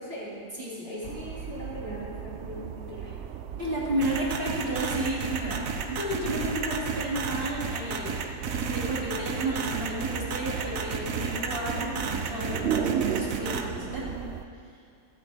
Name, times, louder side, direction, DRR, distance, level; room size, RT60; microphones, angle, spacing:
voice 1, 0.0-0.4 0.8-3.2, equal, 85° left, -7 dB, 3.3 m, -39 dB
voice 2, 0.6-0.9 3.6-8.1 8.6-14.2, right 1 dB, 40° right, -5 dB, 2.9 m, -32 dB
sound 1, 1.0-14.5, right 8 dB, 65° right, 0.8 m, -36 dB
sound 2, 4.0-13.6, right 6 dB, 90° right, 1.2 m, -32 dB
24.0 x 8.5 x 3.5 m, 2.3 s
omnidirectional pair, 1.4 m